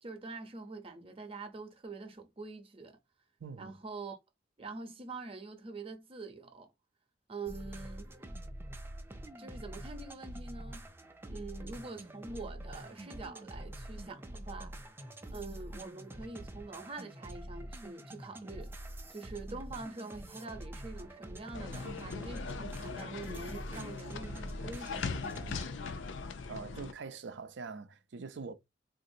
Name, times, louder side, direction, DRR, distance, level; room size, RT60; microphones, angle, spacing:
voice 1, 0.0-3.0 3.6-4.2 4.6-6.7 7.3-8.1 9.4-10.9 11.3-14.8 15.3-18.7 19.1-25.1, right 3 dB, 30° right, 0.7 m, -45 dB
voice 2, 3.4-3.7 26.5-28.5, right 4 dB, 70° right, 0.5 m, -43 dB
sound 1, 7.5-25.6, right 1 dB, 10° right, 0.4 m, -46 dB
sound 2, 21.5-26.9, left 4 dB, 85° left, 0.5 m, -40 dB
3.8 x 2.6 x 2.7 m
head